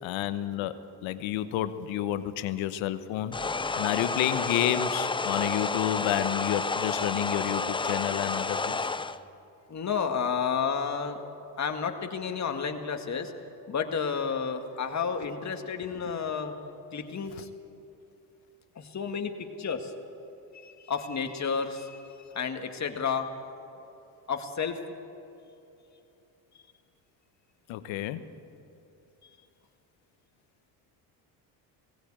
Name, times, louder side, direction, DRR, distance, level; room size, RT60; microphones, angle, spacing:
voice 1, 0.0-0.8 1.0-3.4 3.8-8.8 17.4-17.5 27.7-28.2, left 12 dB, 70° left, 12 dB, 1.2 m, -30 dB
sound 1, 3.3-9.2, left 4 dB, 10° left, 0.5 m, -30 dB
voice 2, 9.7-11.2 11.6-13.3 13.7-16.6 16.9-17.5 18.8-19.3 19.6-19.9 20.5-22.0 22.3-23.3 24.3-24.8, left 6 dB, 35° left, 5 dB, 2.0 m, -31 dB
18.5 x 16.0 x 8.9 m, 2.8 s
supercardioid pair, 80°, 47 cm